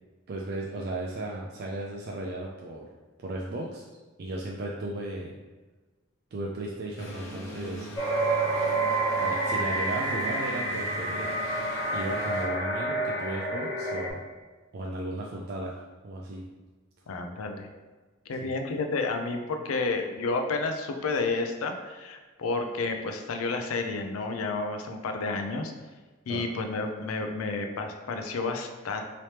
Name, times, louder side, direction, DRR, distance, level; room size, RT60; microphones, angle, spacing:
voice 1, 0.3-2.9 3.2-3.8 4.2-5.3 6.3-7.9 9.2-11.4 11.9-14.2 14.7-15.7 16.0-16.5 18.4-18.5 26.3-26.4, right 1 dB, 50° right, -3 dB, 0.3 m, -35 dB
sound 1, 7.0-12.5, equal, 70° left, 0.8 m, -41 dB
sound 2, 8.0-14.1, right 2 dB, 15° left, 0.8 m, -28 dB
voice 2, 17.1-17.7 18.3-25.7 26.3-29.0, left 3 dB, 90° left, 5 dB, 0.4 m, -31 dB
3.2 x 3.0 x 2.8 m, 1.3 s
head